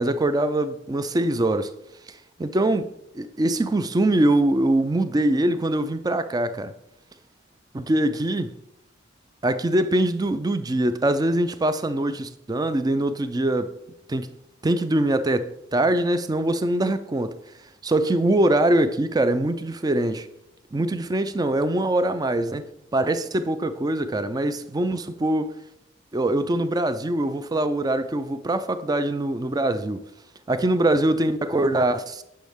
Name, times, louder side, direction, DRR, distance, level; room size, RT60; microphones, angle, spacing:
voice 1, 0.0-1.7 2.4-6.7 7.7-8.6 9.4-13.8 14.1-14.3 14.6-17.4 17.8-20.3 20.7-25.5 26.1-30.0 30.5-32.2, right 1 dB, 20° right, 0.4 m, -23 dB
10.5 x 5.6 x 3.5 m
head